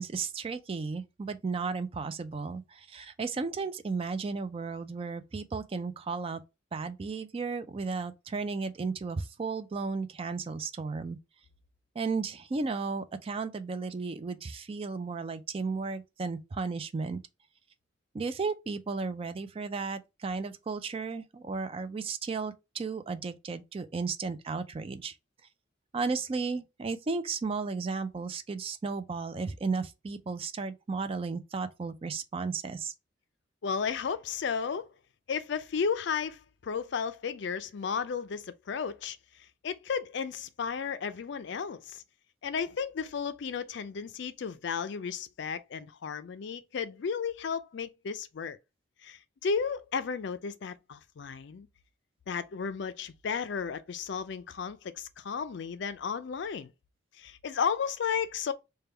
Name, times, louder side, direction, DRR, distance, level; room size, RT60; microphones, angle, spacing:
voice 1, 0.0-6.4 6.7-11.2 12.0-17.2 18.1-25.1 25.9-32.9, right 4 dB, 30° right, 0.3 m, -34 dB
voice 2, 33.6-34.9 35.3-39.2 39.6-42.0 42.4-48.6 49.0-51.7 52.3-56.7 57.2-58.5, left 6 dB, 60° left, 0.4 m, -33 dB
3.4 x 2.2 x 4.3 m
head